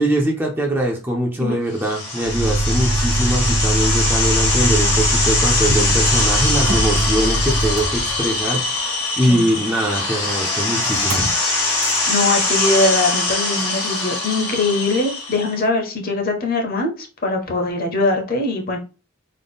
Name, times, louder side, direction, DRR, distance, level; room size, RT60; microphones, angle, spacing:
voice 1, 0.0-8.8 9.2-11.3, right 1 dB, 10° right, -1 dB, 0.5 m, -22 dB
sound 1, 1.8-15.5, left 3 dB, 85° left, 1.8 m, -22 dB
Motor vehicle (road), 2.2-8.6 10.9-11.3 11.7-12.0, right 1 dB, 70° right, 1.1 m, -22 dB
voice 2, 12.1-18.8, left 2 dB, 40° left, 3 dB, 0.7 m, -21 dB
3.8 x 2.1 x 3.5 m, 0.32 s
head